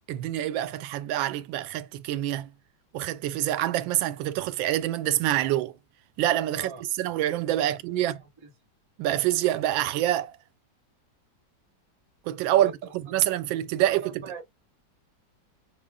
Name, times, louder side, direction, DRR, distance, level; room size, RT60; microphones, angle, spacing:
voice 1, 0.1-2.5 2.9-5.7 6.2-8.2 9.0-10.3 12.3-14.2, right 13 dB, 90° right, 1.3 m, -26 dB
voice 2, 7.6-8.5 12.5-12.8 13.8-14.5, right 3 dB, 35° right, 0.4 m, -42 dB
5.3 x 2.0 x 3.5 m
omnidirectional pair, 2.0 m